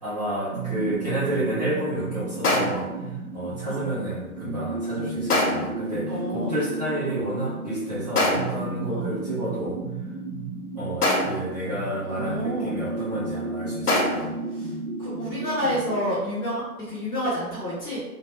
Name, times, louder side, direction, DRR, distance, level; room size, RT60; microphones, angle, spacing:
voice 1, 0.0-2.9 3.3-9.8 10.7-14.3, right 1 dB, 30° right, -10 dB, 0.5 m, -30 dB
sound 1, 0.5-16.0, right 3 dB, 65° right, 0.8 m, -33 dB
sound 2, 2.4-3.0 5.3-5.8 8.2-8.7 11.0-11.6 13.9-14.4, left 1 dB, 85° left, 0.7 m, -24 dB
voice 2, 6.1-6.5 8.9-9.1 12.0-12.7 14.1-14.2 14.5-14.7 15.0-18.0, equal, 15° left, -11 dB, 0.7 m, -29 dB
2.2 x 2.1 x 2.8 m, 1.0 s
figure-of-eight pair, 135°, 45 cm